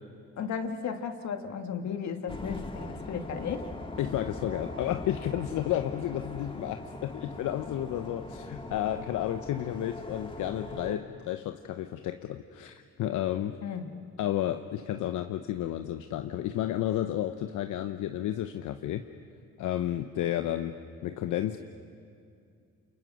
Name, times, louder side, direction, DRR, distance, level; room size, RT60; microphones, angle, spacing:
voice 1, 0.4-3.7 13.6-14.0, left 6 dB, 65° left, 6 dB, 2.2 m, -34 dB
sound 1, 2.3-11.0, left 2 dB, 15° left, 2.1 m, -41 dB
voice 2, 4.0-13.6 14.2-19.1 19.6-21.6, left 12 dB, 85° left, 8 dB, 0.9 m, -32 dB
29.0 x 28.5 x 6.4 m, 2.4 s
cardioid pair, 90°, 30 cm